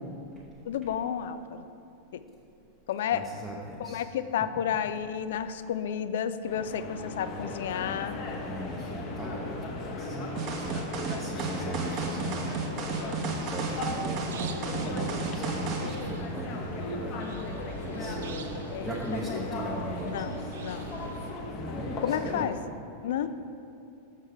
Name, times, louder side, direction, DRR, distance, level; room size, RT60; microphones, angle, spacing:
voice 1, 0.7-1.7 2.1-2.2 2.9-3.2 3.8-8.2 18.7-19.0 19.3-19.5 20.0-20.9 22.0-22.6 23.0-23.3, left 9 dB, 55° left, 12 dB, 0.3 m, -31 dB
voice 2, 3.1-4.0 8.4-12.5 13.3-14.2 14.7-17.3 17.8-18.5 18.8-20.2 21.5-22.5, right 1 dB, 5° right, -5 dB, 0.8 m, -38 dB
sound 1, 6.5-22.5, left 3 dB, 40° left, 0.9 m, -37 dB
sound 2, 10.4-15.9, right 4 dB, 40° right, 1.0 m, -33 dB
sound 3, 11.8-21.3, right 6 dB, 60° right, 0.5 m, -44 dB
6.6 x 6.5 x 4.6 m, 2.6 s
figure-of-eight pair, 90°, 0 cm